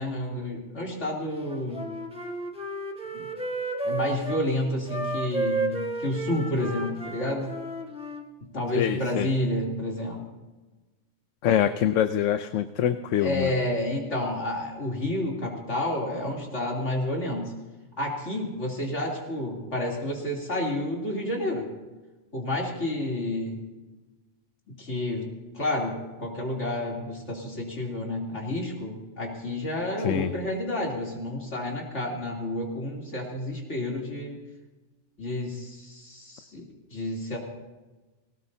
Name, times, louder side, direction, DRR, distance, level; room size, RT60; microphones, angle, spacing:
voice 1, 0.0-1.9 3.1-3.2 3.8-7.6 8.5-10.2 13.2-17.5 18.0-21.7 22.3-23.6 24.7-34.4 35.2-37.4, left 1 dB, 70° left, -2 dB, 3.5 m, -30 dB
Wind instrument woodwind instrument, 1.5-4.4 4.9-8.3, right 2 dB, 5° right, 1.4 m, -32 dB
voice 2, 8.7-9.3 11.4-13.5 30.0-30.3, left 10 dB, 85° left, 10 dB, 1.0 m, -25 dB
20.0 x 18.5 x 2.8 m, 1.2 s
omnidirectional pair, 1.3 m